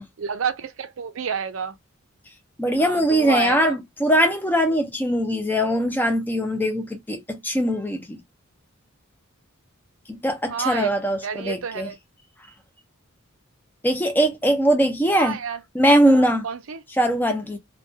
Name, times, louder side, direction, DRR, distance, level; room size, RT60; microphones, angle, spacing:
voice 1, 0.2-1.8 2.8-3.7 10.4-10.9 11.2-12.0 15.1-15.6 16.1-16.8, right 6 dB, 65° right, 0.4 m, -30 dB
voice 2, 2.6-8.2 10.1-11.9 13.8-15.4 15.7-16.5 17.0-17.6, equal, 10° left, 0.4 m, -21 dB
2.2 x 2.2 x 2.6 m
head